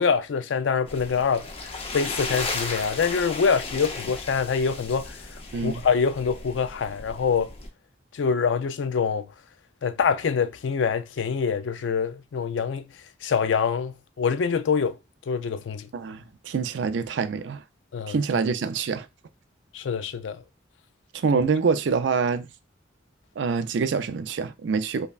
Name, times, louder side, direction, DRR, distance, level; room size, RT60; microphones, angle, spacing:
voice 1, 0.0-5.2 5.6-7.5 8.1-9.3 9.8-12.8 13.2-15.0 15.3-15.9 17.9-18.2 19.7-20.4 21.3-21.4, left 6 dB, 90° left, 0.4 m, -25 dB
sound 1, 0.9-7.7, left 3 dB, 30° left, 0.6 m, -35 dB
voice 2, 15.9-17.6 18.1-19.1 21.1-22.5 23.4-25.1, right 5 dB, 80° right, 0.4 m, -25 dB
5.3 x 2.2 x 2.3 m
head